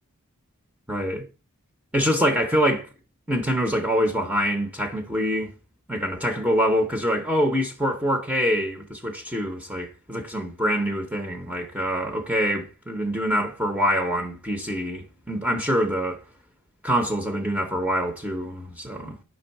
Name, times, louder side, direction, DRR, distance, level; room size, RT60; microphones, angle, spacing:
voice 1, 0.9-1.3 1.9-2.9 3.3-5.5 5.9-16.2 16.8-19.2, equal, 5° right, 0.7 m, -25 dB
5.3 x 3.6 x 5.8 m
head